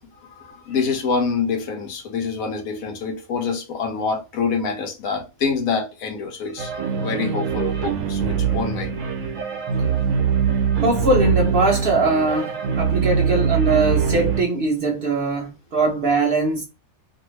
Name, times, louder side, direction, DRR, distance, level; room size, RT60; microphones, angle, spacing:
voice 1, 0.2-8.9, left 5 dB, 80° left, 1.2 m, -26 dB
sound 1, 6.6-14.4, right 7 dB, 70° right, 1.0 m, -22 dB
voice 2, 10.8-16.6, right 2 dB, 55° right, 0.7 m, -21 dB
2.7 x 2.5 x 3.0 m
omnidirectional pair, 1.5 m